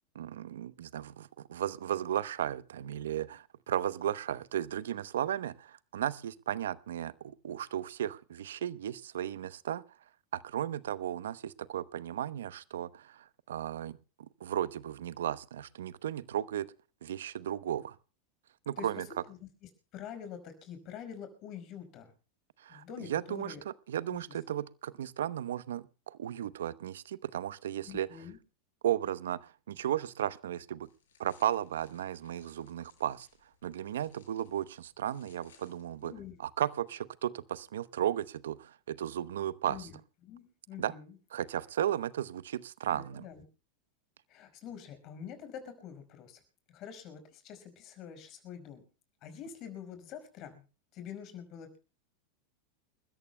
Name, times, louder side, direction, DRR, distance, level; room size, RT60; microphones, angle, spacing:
voice 1, 0.1-9.8 10.3-16.7 17.0-18.0 18.7-19.1 22.6-23.5 23.9-28.1 28.8-30.9 31.2-33.3 33.6-36.1 36.4-39.9 40.8-40.9 41.3-43.2, right 11 dB, 80° right, 0.8 m, -35 dB
voice 2, 18.8-19.4 19.9-22.1 22.7-23.6 24.1-24.4 27.8-28.4 36.0-36.3 39.7-40.0 40.2-41.2 42.9-43.4 44.3-46.4 46.7-48.8 49.2-50.6 50.9-51.8, left 8 dB, 45° left, 5.1 m, -46 dB
sound 1, 30.8-36.1, left 6 dB, 85° left, 5.3 m, -66 dB
29.5 x 14.0 x 2.2 m
hypercardioid pair, 105°, 0 cm